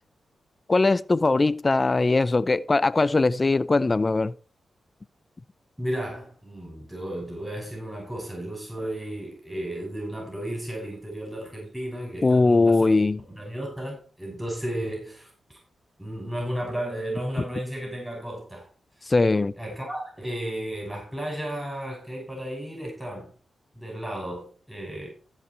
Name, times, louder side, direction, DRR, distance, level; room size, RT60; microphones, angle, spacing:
voice 1, 0.7-4.3 12.2-13.2 19.1-19.5, left 3 dB, 35° left, 0.4 m, -20 dB
voice 2, 5.8-12.9 13.3-15.6 16.0-18.7 19.6-23.3 23.8-25.1, right 1 dB, 5° right, 5.9 m, -34 dB
15.0 x 5.7 x 4.4 m
supercardioid pair, 45°, 0 cm